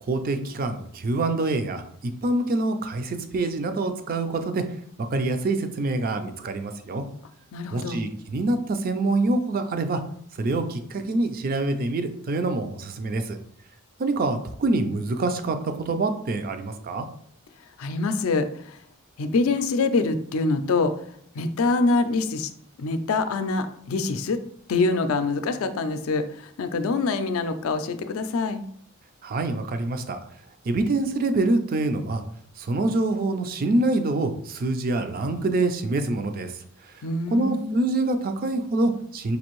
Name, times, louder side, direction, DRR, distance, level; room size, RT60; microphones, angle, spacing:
voice 1, 0.0-4.6 5.0-7.0 7.7-10.0 10.4-13.4 14.0-17.1 29.2-30.2 30.7-32.2 32.6-36.5 37.3-39.4, right 2 dB, 45° right, 8 dB, 0.4 m, -25 dB
voice 2, 7.5-8.0 17.8-18.8 19.2-20.9 21.4-22.5 22.8-24.4 24.7-28.6 37.0-37.8, left 3 dB, 75° left, 10 dB, 0.4 m, -25 dB
5.2 x 2.6 x 3.0 m, 0.64 s
head